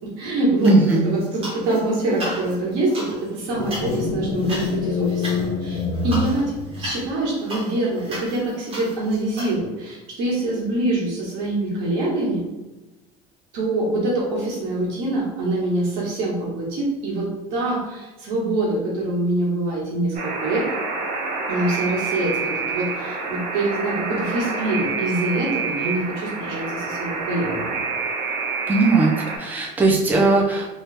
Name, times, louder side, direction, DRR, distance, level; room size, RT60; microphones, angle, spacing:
voice 1, 0.0-12.4 13.5-20.6 21.5-27.8, right 2 dB, 80° right, -4 dB, 1.3 m, -25 dB
voice 2, 0.6-1.0 28.7-30.7, right 3 dB, 10° right, -2 dB, 0.5 m, -18 dB
sound 1, 0.6-1.8 2.1-9.5, equal, 35° right, 1.2 m, -35 dB
sound 2, 3.5-7.2, left 5 dB, 65° left, 0.5 m, -26 dB
Alarm, 20.1-29.4, right 4 dB, 60° right, 0.7 m, -28 dB
2.8 x 2.3 x 3.3 m, 1.1 s
cardioid pair, 130°, 16 cm